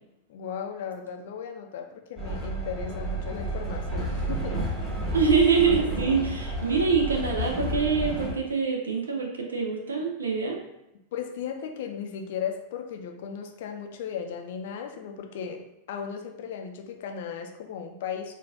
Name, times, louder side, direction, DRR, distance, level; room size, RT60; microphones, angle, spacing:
voice 1, 0.3-4.6 11.1-15.6 15.9-18.4, left 7 dB, 55° left, 4 dB, 0.5 m, -36 dB
Train, 2.2-8.3, right 1 dB, 20° right, 1.4 m, -31 dB
voice 2, 5.1-10.6, right 5 dB, 70° right, 2 dB, 0.5 m, -24 dB
3.8 x 2.4 x 3.5 m, 0.88 s
figure-of-eight pair, 90°, 0 cm